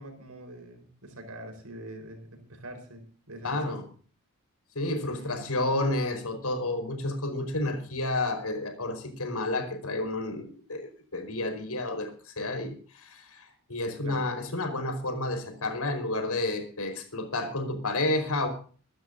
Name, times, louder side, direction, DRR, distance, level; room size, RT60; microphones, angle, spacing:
voice 1, 0.0-3.8 5.2-5.6 14.0-14.3, right 1 dB, 85° right, 6 dB, 4.7 m, -44 dB
voice 2, 3.4-3.8 4.7-12.1 12.4-18.5, left 2 dB, 85° left, 8 dB, 4.9 m, -30 dB
24.5 x 12.5 x 2.7 m, 0.41 s
head